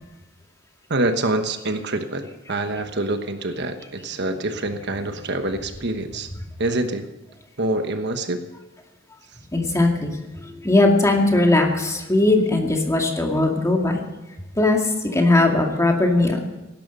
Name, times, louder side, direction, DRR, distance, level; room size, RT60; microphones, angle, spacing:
voice 1, 0.9-6.3 6.6-7.1 7.6-8.4, right 2 dB, 55° right, 7 dB, 1.2 m, -26 dB
voice 2, 9.5-14.0 14.6-16.6, left 2 dB, 15° left, 1 dB, 2.3 m, -19 dB
17.0 x 12.0 x 5.5 m, 1.0 s
head